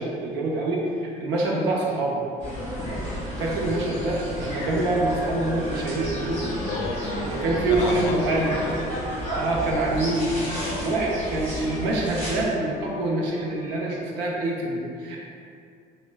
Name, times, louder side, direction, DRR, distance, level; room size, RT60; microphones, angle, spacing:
voice 1, 0.0-2.2 3.4-6.5 7.1-8.6 9.3-10.4 10.8-15.2, right 2 dB, 80° right, -3 dB, 0.6 m, -25 dB
sound 1, 2.4-12.5, equal, 10° left, 1.4 m, -32 dB
sound 2, 3.0-14.0, right 1 dB, 60° right, 0.9 m, -40 dB
voice 2, 6.5-9.1 10.6-10.9, left 3 dB, 75° left, 2 dB, 0.4 m, -34 dB
4.1 x 2.1 x 2.2 m, 2.3 s
cardioid pair, 175°, 18 cm